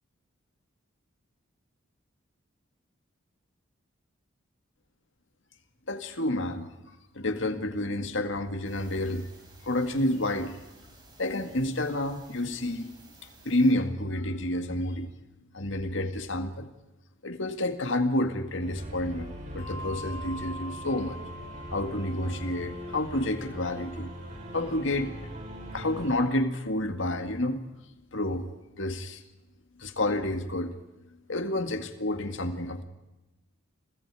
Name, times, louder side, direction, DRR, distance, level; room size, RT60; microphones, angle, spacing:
voice 1, 5.9-6.7 7.2-9.2 9.7-10.5 11.2-12.9 13.5-15.1 15.5-16.7 17.2-21.2 21.7-24.1 24.5-25.1 25.7-27.6 28.1-28.5 28.8-29.2 29.8-30.7 31.3-32.8, left 1 dB, 65° left, 7 dB, 2.1 m, -29 dB
sound 1, 8.6-13.7, right 2 dB, 20° right, 5.6 m, -54 dB
sound 2, 18.6-26.2, equal, 35° right, 6.0 m, -41 dB
Bell, 19.6-26.5, equal, 30° left, 5.7 m, -46 dB
30.0 x 24.0 x 4.9 m, 1.0 s
head